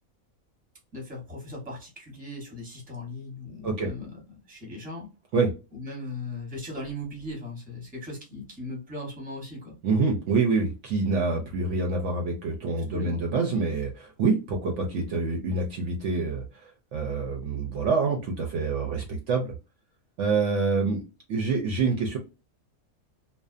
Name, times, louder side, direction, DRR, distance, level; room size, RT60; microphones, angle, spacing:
voice 1, 0.9-4.2 4.5-5.1 5.7-9.8 12.9-13.2, left 1 dB, 5° right, -1 dB, 0.9 m, -38 dB
voice 2, 9.8-19.5 20.2-21.0 21.3-22.2, right 4 dB, 65° right, 2 dB, 0.8 m, -26 dB
2.5 x 2.1 x 2.4 m, 0.29 s
omnidirectional pair, 1.5 m